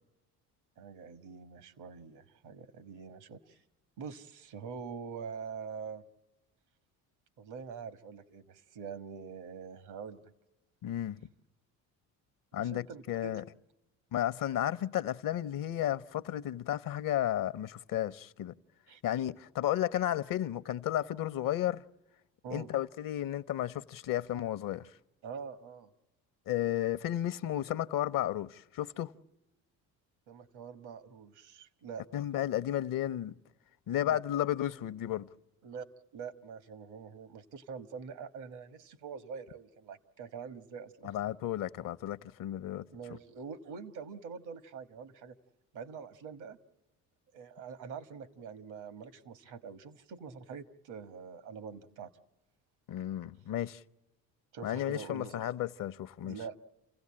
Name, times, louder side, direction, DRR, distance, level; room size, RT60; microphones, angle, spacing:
voice 1, 0.8-3.6 4.0-6.0 7.4-10.2 12.5-13.4 18.9-19.0 22.4-22.7 25.2-25.9 30.3-32.0 34.0-34.2 35.6-35.8 36.1-41.3 42.9-45.4 45.7-46.6 47.3-52.1 54.5-55.5 56.2-56.6, right 6 dB, 75° right, 1.5 m, -45 dB
voice 2, 10.8-11.2 12.5-13.4 14.1-18.5 19.0-21.8 22.5-24.9 26.5-29.1 32.1-33.3 33.9-35.3 41.0-42.9 52.9-53.8 54.6-56.4, left 12 dB, 55° left, 0.7 m, -33 dB
28.5 x 16.5 x 8.7 m
supercardioid pair, 70°, 40 cm